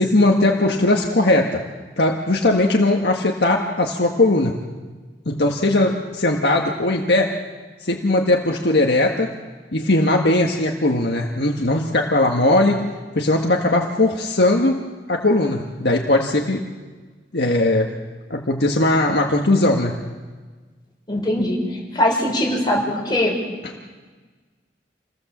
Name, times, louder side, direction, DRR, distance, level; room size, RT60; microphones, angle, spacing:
voice 1, 0.0-1.6 2.0-4.6 5.2-7.4 7.8-9.3 9.7-12.8 13.1-14.8 15.1-16.6 17.3-17.9 18.3-20.0, left 2 dB, 65° left, 0 dB, 1.7 m, -19 dB
voice 2, 21.1-21.6 21.9-23.4, left 1 dB, 25° left, -1 dB, 5.9 m, -21 dB
28.0 x 17.5 x 7.4 m, 1.4 s
head